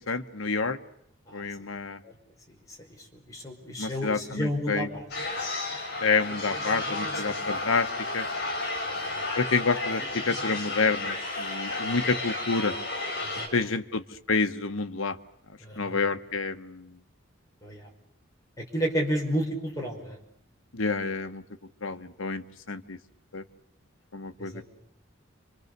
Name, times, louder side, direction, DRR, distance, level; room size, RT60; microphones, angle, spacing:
voice 1, 0.1-0.8 1.3-2.0 3.8-4.9 6.0-7.9 8.1-8.2 9.4-12.7 13.5-14.0 14.3-15.2 15.8-16.8 20.7-21.4 21.8-23.0 23.3-23.4 24.1-24.6, left 4 dB, 85° left, 8 dB, 1.2 m, -28 dB
voice 2, 2.8-5.4 7.1-7.8 8.8-9.2 11.8-12.1 13.2-13.8 15.6-16.0 17.6-17.9 18.6-20.2 24.4-24.7, equal, 15° left, -1 dB, 5.4 m, -33 dB
sound 1, 5.1-13.5, left 2 dB, 50° left, 6.9 m, -32 dB
30.0 x 25.5 x 6.8 m, 0.75 s
head